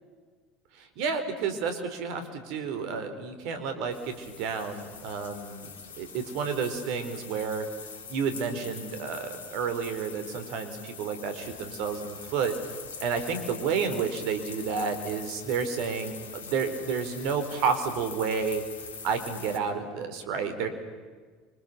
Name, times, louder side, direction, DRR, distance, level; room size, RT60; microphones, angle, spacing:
voice 1, 1.0-5.7 6.0-7.7 8.1-12.5 13.0-18.6 19.0-20.7, right 6 dB, 65° right, 8 dB, 4.6 m, -30 dB
sound 1, 3.9-19.6, left 5 dB, 80° left, 4.0 m, -43 dB
29.5 x 25.5 x 7.0 m, 1.5 s
hypercardioid pair, 70°, 0 cm